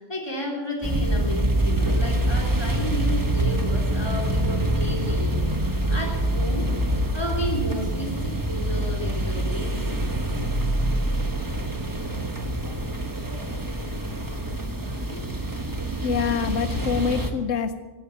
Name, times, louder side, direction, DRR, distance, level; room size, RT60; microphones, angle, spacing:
voice 1, 0.0-6.7 7.1-10.1 10.7-10.9 12.6-13.6 14.1-14.4 14.8-15.3, left 1 dB, 20° left, 1 dB, 3.3 m, -33 dB
sound 1, 0.8-17.3, right 1 dB, 15° right, 1.2 m, -25 dB
voice 2, 16.0-17.8, left 6 dB, 85° left, 10 dB, 1.1 m, -25 dB
17.0 x 9.4 x 7.2 m, 1.2 s
omnidirectional pair, 1.3 m